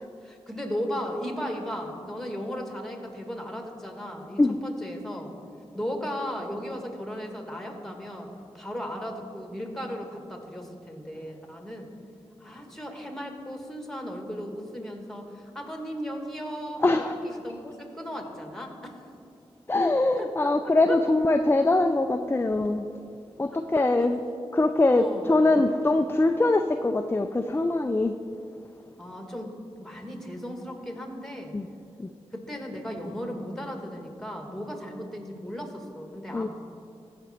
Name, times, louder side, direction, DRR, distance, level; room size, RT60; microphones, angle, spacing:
voice 1, 0.2-5.3 5.7-8.3 8.5-11.9 12.4-19.0 20.2-20.3 20.9-21.0 23.5-23.9 24.9-25.4 29.0-29.5 29.8-31.5 32.3-36.5, equal, 5° left, 3 dB, 1.8 m, -36 dB
voice 2, 16.8-17.2 19.7-22.8 23.4-24.2 24.5-28.1 31.5-31.7 32.0-32.1 36.3-36.5, left 2 dB, 20° left, 7 dB, 0.4 m, -23 dB
15.0 x 5.1 x 4.4 m, 2.6 s
cardioid pair, 40°, 11 cm